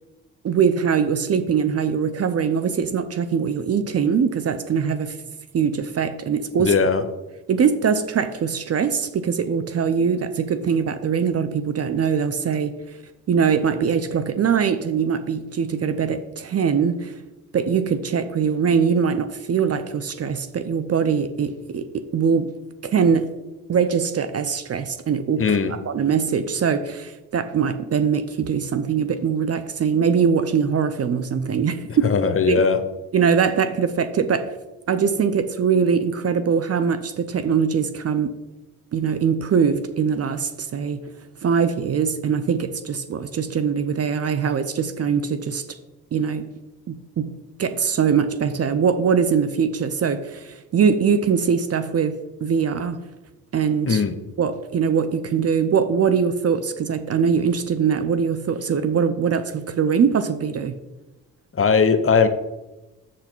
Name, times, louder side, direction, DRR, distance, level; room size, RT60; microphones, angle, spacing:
voice 1, 0.4-5.2 5.5-6.7 7.5-12.8 13.3-17.2 17.5-22.6 22.8-23.3 23.7-32.1 32.5-32.6 33.1-34.6 34.9-38.3 38.9-41.0 41.4-45.6 46.1-46.5 46.9-47.3 47.6-53.0 53.5-54.0 54.4-60.7, right 6 dB, 40° right, 10 dB, 0.6 m, -22 dB
voice 2, 6.6-7.0 25.4-25.7 31.9-32.8 53.9-54.1 61.5-62.3, left 5 dB, 35° left, 10 dB, 0.9 m, -19 dB
6.3 x 5.9 x 4.4 m, 1.1 s
hypercardioid pair, 50°, 40 cm